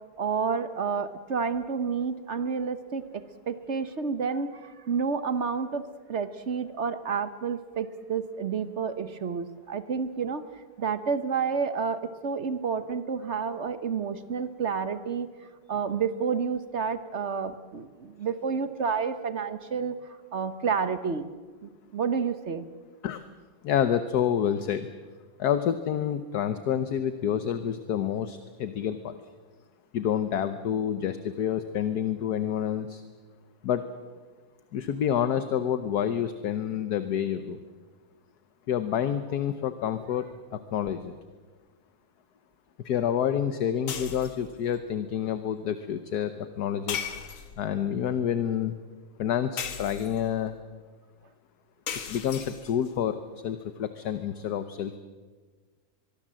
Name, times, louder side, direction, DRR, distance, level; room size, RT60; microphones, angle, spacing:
voice 1, 0.2-10.4 10.8-15.3 15.7-20.0 20.3-21.2 21.6-22.6, right 6 dB, 45° right, 11 dB, 1.0 m, -30 dB
voice 2, 23.6-24.9 25.4-29.1 29.9-33.0 33.6-33.8 34.7-37.6 38.7-41.1 42.8-47.0 47.6-48.7 49.2-50.6 52.1-53.2 53.4-55.0, left 9 dB, 60° left, 10 dB, 1.3 m, -28 dB
sound 1, 43.9-44.5 46.9-47.7 49.6-50.3 51.9-52.9, left 7 dB, 80° left, 2.4 m, -36 dB
23.5 x 23.0 x 7.6 m, 1.4 s
omnidirectional pair, 2.2 m